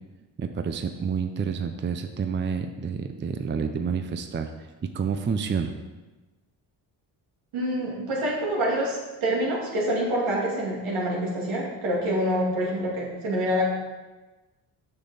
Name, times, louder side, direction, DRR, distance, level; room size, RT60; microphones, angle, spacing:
voice 1, 0.4-4.5 4.9-5.7, right 6 dB, 25° right, 7 dB, 0.5 m, -29 dB
voice 2, 7.5-13.7, equal, 75° right, -3 dB, 2.4 m, -26 dB
6.6 x 6.2 x 4.1 m, 1.2 s
supercardioid pair, 60°, 50 cm